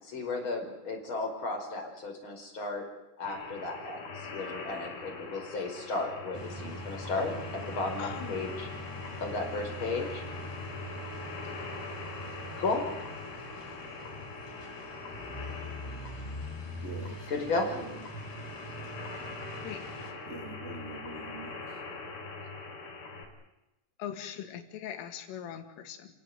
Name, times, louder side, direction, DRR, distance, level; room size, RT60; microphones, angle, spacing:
voice 1, 0.0-2.8 3.2-8.7 9.2-10.2 12.6-12.9 17.3-17.7, left 3 dB, 25° left, 3 dB, 5.4 m, -34 dB
sound 1, 3.3-23.3, left 3 dB, 50° left, 5.8 m, -43 dB
sound 2, 6.3-20.1, right 1 dB, 5° left, 2.9 m, -43 dB
voice 2, 8.0-8.5 19.6-19.8 24.0-26.1, left 10 dB, 85° left, 8 dB, 4.6 m, -40 dB
voice 3, 16.8-17.3 17.7-18.0 20.2-21.8, right 2 dB, 25° right, 2 dB, 1.7 m, -44 dB
28.5 x 17.5 x 9.7 m, 0.96 s
omnidirectional pair, 5.6 m